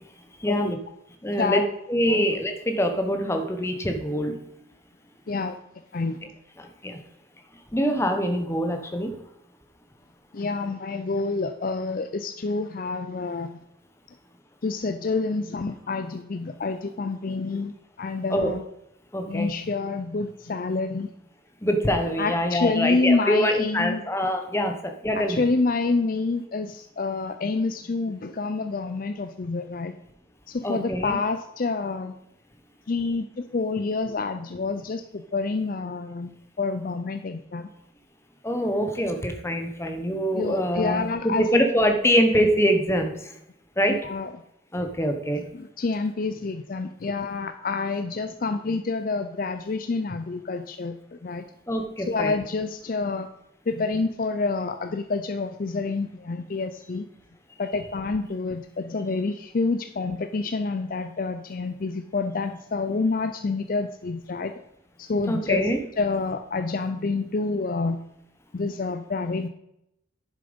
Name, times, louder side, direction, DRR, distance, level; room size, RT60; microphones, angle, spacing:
voice 1, 0.4-0.8 1.2-1.6 1.9-4.4 6.6-7.0 7.7-9.1 18.3-18.6 19.1-19.5 21.6-25.4 30.6-31.2 38.4-43.1 43.8-44.1 44.7-45.4 51.7-52.4 65.3-65.8, equal, 15° left, 5 dB, 1.2 m, -24 dB
voice 2, 5.3-5.6 5.9-6.2 10.3-13.6 14.6-17.7 18.0-18.6 19.3-21.1 22.2-24.0 25.1-29.9 30.5-32.2 32.9-37.7 40.3-41.5 43.9-44.3 45.5-51.5 52.0-53.3 53.7-57.1 57.6-64.5 65.0-65.7 66.0-68.0 68.5-69.5, left 3 dB, 45° left, 9 dB, 0.5 m, -28 dB
10.0 x 7.5 x 5.2 m, 0.81 s
head